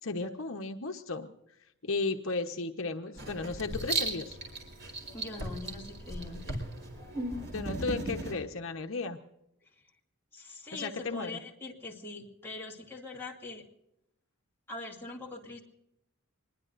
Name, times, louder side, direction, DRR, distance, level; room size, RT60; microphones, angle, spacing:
voice 1, 0.0-1.3 1.8-4.4 7.5-9.2 10.7-11.4, left 3 dB, 65° left, 4 dB, 1.1 m, -34 dB
Writing, 3.2-8.3, right 2 dB, 55° right, 4.4 m, -36 dB
voice 2, 5.1-6.5 10.3-13.6 14.7-15.6, left 2 dB, 10° left, -2 dB, 2.4 m, -43 dB
25.0 x 21.5 x 2.6 m, 0.83 s
head